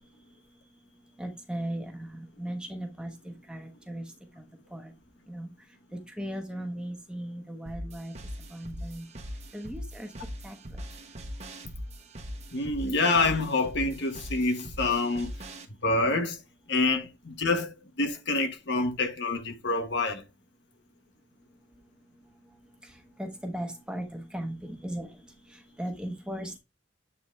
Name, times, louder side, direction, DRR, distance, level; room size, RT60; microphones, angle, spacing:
voice 1, 1.2-4.0 4.4-4.5 4.7-4.9 5.3-5.5 5.9-8.1 8.5-9.1 9.5-10.1 10.4-10.8 22.8-26.6, right 1 dB, 5° right, 1.1 m, -37 dB
sound 1, 7.7-15.7, equal, 35° right, 1.1 m, -41 dB
voice 2, 12.5-15.3 15.8-16.4 16.7-20.2, left 3 dB, 65° left, 1.3 m, -27 dB
8.2 x 3.9 x 3.2 m
head